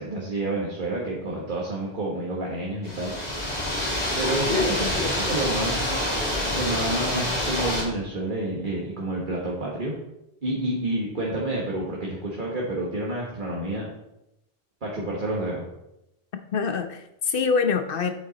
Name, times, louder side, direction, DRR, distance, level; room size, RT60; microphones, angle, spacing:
voice 1, 0.0-3.1 4.2-5.8 6.5-9.9 10.4-13.9 14.8-15.6, right 1 dB, 55° right, -3 dB, 1.6 m, -29 dB
sound 1, 2.8-7.8, left 1 dB, 40° left, 2.3 m, -27 dB
voice 2, 4.5-4.9 16.5-18.1, left 5 dB, 60° left, 8 dB, 1.0 m, -25 dB
8.2 x 7.9 x 4.1 m, 0.86 s
omnidirectional pair, 1.0 m